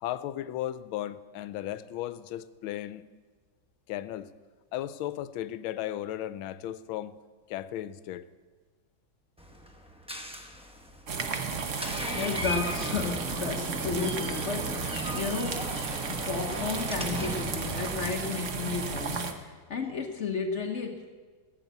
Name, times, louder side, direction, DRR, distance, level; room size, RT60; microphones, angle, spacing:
voice 1, 0.0-3.1 3.9-4.3 4.7-7.2 7.5-8.3, left 12 dB, 90° left, 14 dB, 1.4 m, -35 dB
Door, 9.4-18.1, left 1 dB, 5° right, 0.5 m, -38 dB
sound 1, 11.1-19.3, right 5 dB, 50° right, 1.0 m, -34 dB
voice 2, 12.1-15.7 16.1-21.1, left 5 dB, 50° left, 4 dB, 0.9 m, -33 dB
17.0 x 7.0 x 8.0 m, 1.5 s
omnidirectional pair, 2.2 m